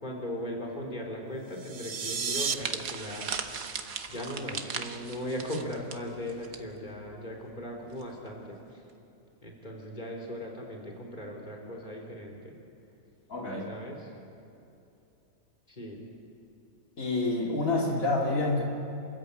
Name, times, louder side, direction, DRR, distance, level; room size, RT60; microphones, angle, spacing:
voice 1, 0.0-3.3 4.1-8.8 9.4-12.5 13.7-14.1 15.7-16.0, left 1 dB, 35° left, 0 dB, 3.7 m, -38 dB
sound 1, 1.5-2.5, right 6 dB, 35° right, 0.6 m, -32 dB
sound 2, 2.3-6.6 6.9-7.1 8.0-8.3, right 6 dB, 80° right, 1.6 m, -38 dB
voice 2, 13.3-13.7 17.0-18.6, left 2 dB, 75° left, -1 dB, 3.0 m, -28 dB
28.0 x 14.0 x 8.8 m, 2.8 s
omnidirectional pair, 1.5 m